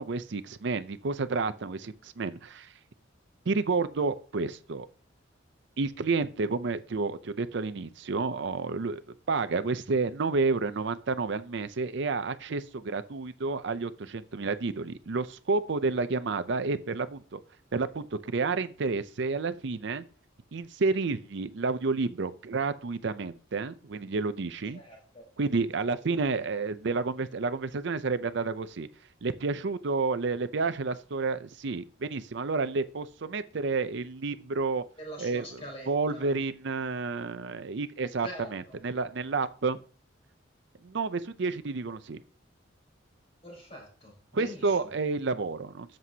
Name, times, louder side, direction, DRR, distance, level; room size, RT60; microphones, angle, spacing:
voice 1, 0.0-2.7 3.5-4.9 5.8-9.0 9.3-17.4 17.7-20.0 20.5-24.8 25.4-28.9 29.2-34.8 35.2-39.8 40.8-42.2 44.3-46.0, right 4 dB, 60° right, 12 dB, 0.5 m, -30 dB
voice 2, 24.7-25.3 35.0-36.3 38.2-38.7 43.4-44.9, equal, 30° left, 0 dB, 4.1 m, -44 dB
11.0 x 7.6 x 2.8 m, 0.39 s
head